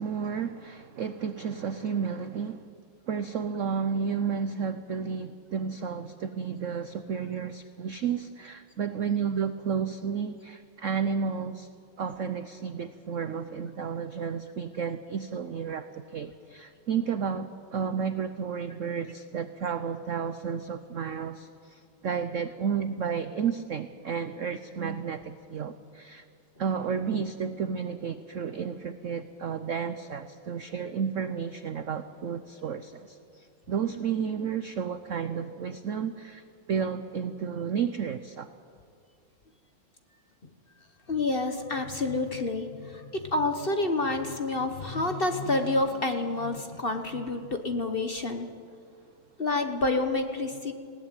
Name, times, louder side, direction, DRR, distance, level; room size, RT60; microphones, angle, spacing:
voice 1, 0.0-2.7 3.1-11.7 12.0-26.3 26.6-38.5, right 6 dB, 75° right, 11 dB, 0.7 m, -32 dB
voice 2, 41.1-48.5 49.4-50.7, left 2 dB, 35° left, 6 dB, 1.1 m, -28 dB
20.0 x 17.0 x 9.0 m, 2.3 s
omnidirectional pair, 2.3 m